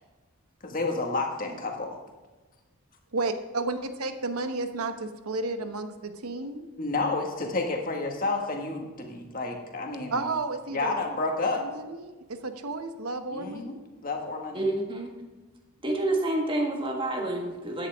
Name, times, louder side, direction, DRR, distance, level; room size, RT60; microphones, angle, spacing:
voice 1, 0.6-2.0 6.8-10.3 10.7-11.7 13.3-13.7 14.0-14.6, left 3 dB, 40° left, 2 dB, 1.8 m, -30 dB
voice 2, 3.1-6.6 10.1-11.0 11.6-13.8, right 3 dB, 85° right, 8 dB, 1.0 m, -32 dB
voice 3, 14.5-15.1 15.8-17.9, right 2 dB, 20° right, 2 dB, 1.6 m, -28 dB
13.0 x 9.8 x 3.6 m, 1.2 s
head